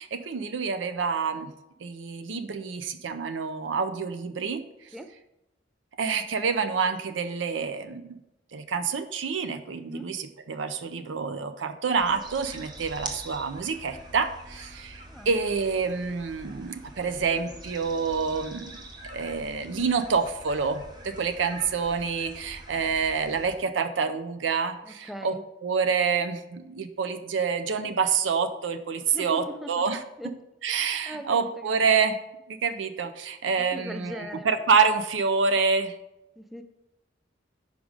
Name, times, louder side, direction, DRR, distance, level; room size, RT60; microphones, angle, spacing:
voice 1, 0.0-1.5 1.8-4.6 6.0-8.2 8.5-18.7 19.0-25.3 25.6-30.0 30.6-32.2 32.5-35.9, right 5 dB, 90° right, 10 dB, 0.5 m, -27 dB
sound 1, 12.0-23.6, right 1 dB, 25° right, 0.8 m, -44 dB
voice 2, 24.8-25.4 29.1-29.8 30.2-30.4 30.7-32.0 33.6-34.6 36.4-36.6, equal, ahead, 7 dB, 0.3 m, -40 dB
5.1 x 4.8 x 5.1 m, 0.90 s
head